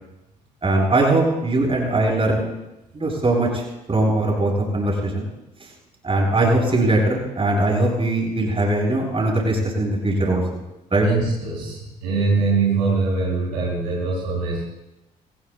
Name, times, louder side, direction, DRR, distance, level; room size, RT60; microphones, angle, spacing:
voice 1, 0.6-2.5 2.9-3.6 3.9-5.3 6.0-10.4 10.9-11.1, right 2 dB, 25° right, -2 dB, 7.7 m, -20 dB
voice 2, 11.0-14.6, right 4 dB, 70° right, -4 dB, 5.2 m, -22 dB
24.0 x 20.0 x 2.2 m, 0.94 s
figure-of-eight pair, 45°, 21 cm